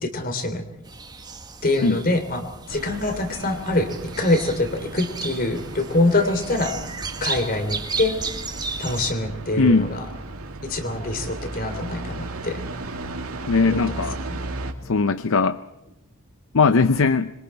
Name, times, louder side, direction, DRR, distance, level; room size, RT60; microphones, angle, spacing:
voice 1, 0.0-0.6 1.6-3.9 4.2-6.7 7.2-8.1 8.8-10.1 10.7-12.6 13.7-14.0 14.3-14.4, left 2 dB, 40° left, 8 dB, 3.2 m, -24 dB
sound 1, 0.8-9.1, right 4 dB, 20° right, 1.8 m, -34 dB
sound 2, 2.7-14.7, right 2 dB, 80° right, 2.8 m, -35 dB
voice 2, 9.6-9.9 13.5-14.2 14.8-15.6 16.5-17.3, left 4 dB, 65° left, 12 dB, 0.6 m, -19 dB
26.0 x 23.0 x 4.5 m, 0.94 s
head